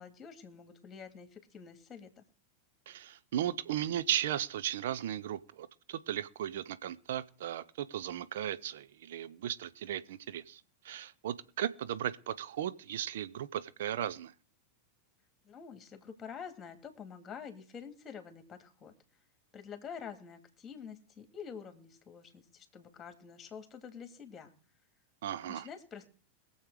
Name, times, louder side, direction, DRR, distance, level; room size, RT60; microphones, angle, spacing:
voice 1, 0.0-2.2 15.4-18.9 19.5-24.5 25.5-26.1, left 7 dB, 20° left, 2.4 m, -47 dB
voice 2, 2.9-14.3 25.2-25.7, right 11 dB, 55° right, 0.7 m, -36 dB
22.0 x 7.3 x 4.8 m
figure-of-eight pair, 90°, 0 cm